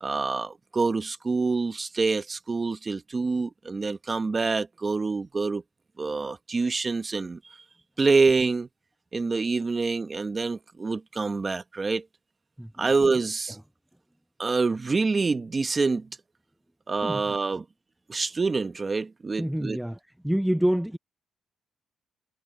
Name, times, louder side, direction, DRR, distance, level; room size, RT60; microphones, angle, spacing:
voice 1, 0.0-5.6 6.0-7.4 8.0-8.7 9.1-12.0 12.8-13.6 14.4-16.1 16.9-17.6 18.1-19.8, right 4 dB, 30° right, 1.4 m, -26 dB
voice 2, 19.4-20.0 20.2-21.0, equal, 5° right, 0.5 m, -26 dB
cardioid pair, 90°, 0 cm